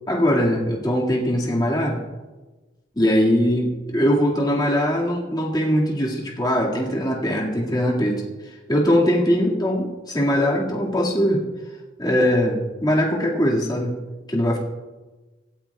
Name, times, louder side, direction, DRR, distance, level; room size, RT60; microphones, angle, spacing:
voice 1, 0.1-2.0 3.0-8.2 8.7-11.4 12.0-13.9 14.3-14.6, equal, 25° left, -3 dB, 2.1 m, -21 dB
25.5 x 8.8 x 2.4 m, 1.2 s
head